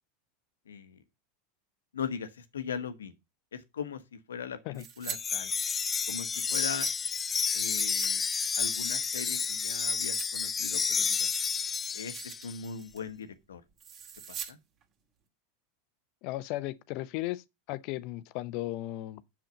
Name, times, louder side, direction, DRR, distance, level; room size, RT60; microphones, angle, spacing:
voice 1, 0.7-1.0 1.9-2.3 2.5-3.1 3.7-4.0 4.3-5.5 6.1-6.9 7.5-8.2 8.6-11.3 11.9-12.1 12.4-13.6 14.5-14.6, left 6 dB, 85° left, 1.2 m, -39 dB
sound 1, 4.7-5.2 5.5-6.9 7.5-8.1 8.4-8.5 9.0-10.3 10.6-11.6 12.0-12.5 12.8-13.1 13.8-14.5 14.8-14.9, right 8 dB, 40° right, 2.3 m, -44 dB
Wind chime, 5.1-12.6, left 6 dB, 25° left, 0.4 m, -30 dB
voice 2, 16.2-19.2, left 16 dB, 55° left, 0.7 m, -36 dB
7.7 x 7.2 x 5.3 m
hypercardioid pair, 90°, 0 cm